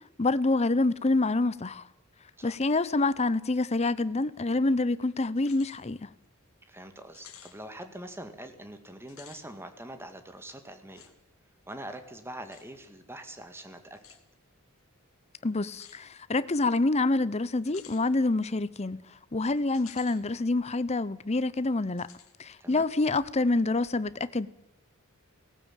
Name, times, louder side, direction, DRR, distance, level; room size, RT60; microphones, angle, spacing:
voice 1, 0.2-1.8 2.4-6.1 15.4-19.0 19.3-22.1 22.4-24.5, left 2 dB, 30° left, 0.7 m, -27 dB
sound 1, 5.4-5.8 6.2-6.3 7.1-7.6 9.0-9.4 11.0-11.1 12.5-12.7 14.0-14.2 15.7-16.0 17.6-18.0 19.7-20.2 20.6-20.7 22.0-22.3, left 10 dB, 70° left, 2.5 m, -51 dB
voice 2, 6.7-11.1 11.7-14.0 22.6-22.9, right 1 dB, 10° right, 1.9 m, -44 dB
18.5 x 16.0 x 9.1 m
head